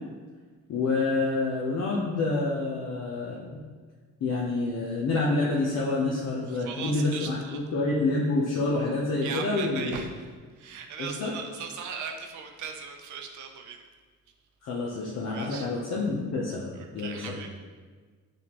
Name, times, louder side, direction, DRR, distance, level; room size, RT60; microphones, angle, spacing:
voice 1, 0.7-3.6 4.2-9.9 11.0-11.3 14.6-16.7 16.9-17.4, left 3 dB, 60° left, -4 dB, 0.7 m, -28 dB
voice 2, 6.5-7.6 9.2-10.3 10.6-13.8 15.3-15.7 16.8-17.5, right 6 dB, 75° right, 4 dB, 0.7 m, -38 dB
6.4 x 2.5 x 2.9 m, 1.5 s
cardioid pair, 90°, 30 cm